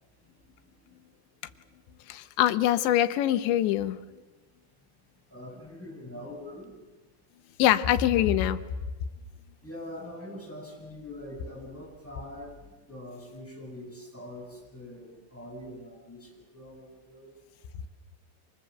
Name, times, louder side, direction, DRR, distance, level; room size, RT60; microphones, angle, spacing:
voice 1, 2.1-4.0 7.6-8.6, left 12 dB, 85° left, 11 dB, 3.3 m, -23 dB
voice 2, 5.3-6.8 9.6-17.3, left 1 dB, 5° left, -1 dB, 7.6 m, -43 dB
28.5 x 26.0 x 7.9 m, 1.2 s
omnidirectional pair, 5.1 m